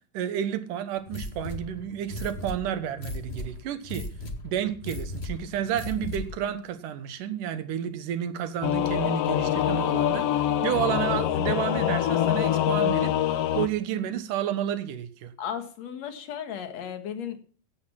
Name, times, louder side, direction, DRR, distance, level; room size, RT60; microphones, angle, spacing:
voice 1, 0.0-4.1 4.4-15.3, right 10 dB, 75° right, 11 dB, 2.7 m, -31 dB
sound 1, 1.1-6.5, left 2 dB, 30° left, 1.3 m, -37 dB
Singing / Musical instrument, 8.6-13.7, left 11 dB, 75° left, 1.4 m, -25 dB
voice 2, 15.4-17.4, left 8 dB, 60° left, 8 dB, 2.6 m, -35 dB
16.0 x 8.8 x 5.8 m, 0.41 s
omnidirectional pair, 3.8 m